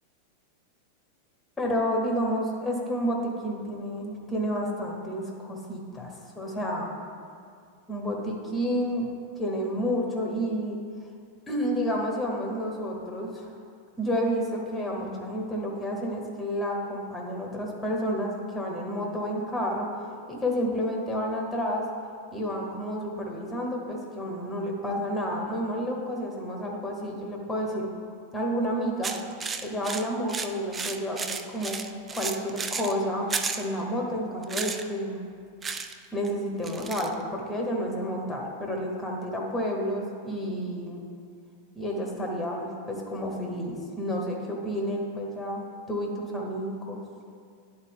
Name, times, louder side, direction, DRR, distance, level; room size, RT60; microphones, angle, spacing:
voice 1, 1.6-6.9 7.9-9.1 9.4-10.8 11.5-13.5 14.0-19.9 20.3-21.8 22.3-27.9 28.3-29.1 29.6-31.8 32.1-35.2 36.1-41.0 41.7-47.0, equal, 10° left, 0 dB, 1.3 m, -30 dB
sound 1, 29.0-32.9 33.3-33.7 34.4-34.8 35.6-36.0 36.2-36.3 36.6-37.1, right 5 dB, 20° right, 0.3 m, -33 dB
10.5 x 4.2 x 3.6 m, 2.2 s
figure-of-eight pair, 90°, 0 cm